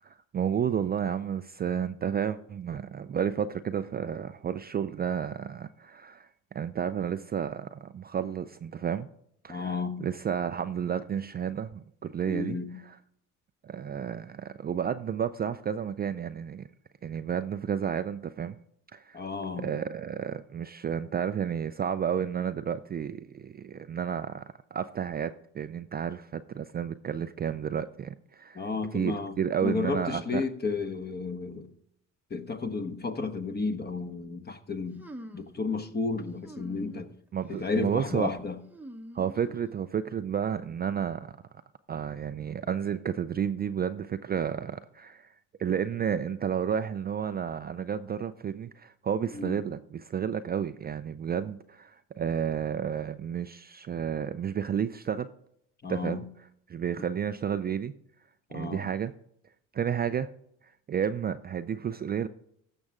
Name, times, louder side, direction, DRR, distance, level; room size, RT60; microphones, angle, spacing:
voice 1, 0.0-9.1 9.4-9.7 10.0-12.6 13.6-16.7 17.0-18.6 18.9-19.2 19.6-24.4 24.7-30.4 37.3-38.3 39.1-41.3 41.9-45.3 45.6-55.3 55.9-56.2 56.7-57.9 58.5-59.1 59.7-60.3 60.9-62.3, right 8 dB, 30° right, 0.4 m, -31 dB
voice 2, 9.5-10.0 12.3-12.8 19.1-19.7 28.5-31.7 32.3-35.0 35.3-37.1 37.5-38.6 49.3-49.7 55.8-56.3 58.5-58.9, left 4 dB, 25° left, 1.2 m, -32 dB
sound 1, 35.0-35.6 36.4-37.1 37.5-37.9 38.7-39.9, right 1 dB, 5° right, 0.9 m, -46 dB
14.5 x 6.1 x 3.7 m
hypercardioid pair, 70°, 35 cm